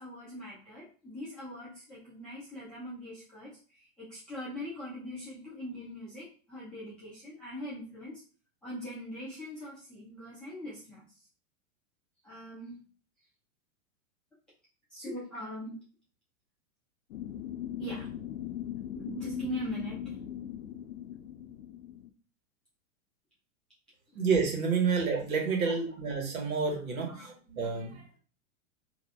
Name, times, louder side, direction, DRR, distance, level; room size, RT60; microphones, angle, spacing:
voice 1, 0.0-8.2 8.6-11.3 12.2-12.8 14.9-15.8 17.8-18.1 18.9-20.2 24.9-25.0 25.6-25.7 27.1-27.3, left 1 dB, ahead, -11 dB, 0.7 m, -41 dB
sound 1, 17.1-22.1, left 11 dB, 80° left, 0.6 m, -39 dB
voice 2, 24.1-28.0, right 5 dB, 75° right, 2 dB, 1.3 m, -29 dB
2.7 x 2.3 x 4.1 m, 0.38 s
supercardioid pair, 170°, 42 cm